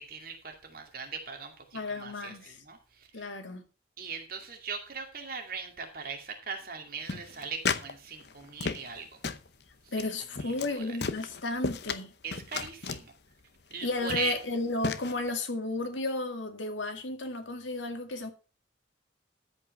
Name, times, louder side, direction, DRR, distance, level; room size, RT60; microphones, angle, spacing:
voice 1, 0.0-3.3 4.0-9.2 10.4-10.8 12.2-13.1 13.7-14.3, right 5 dB, 50° right, 2.4 m, -39 dB
voice 2, 1.7-2.6 3.1-3.6 9.9-12.1 13.8-18.3, left 2 dB, 85° left, 2.1 m, -33 dB
sound 1, 7.1-7.9 8.2-9.0 9.2-9.5 9.9-10.1 10.4-10.7 11.0-12.0 12.3-13.1 13.7-13.8 14.1-14.4 14.8-15.1, left 5 dB, 60° left, 0.8 m, -33 dB
13.5 x 5.4 x 5.7 m
head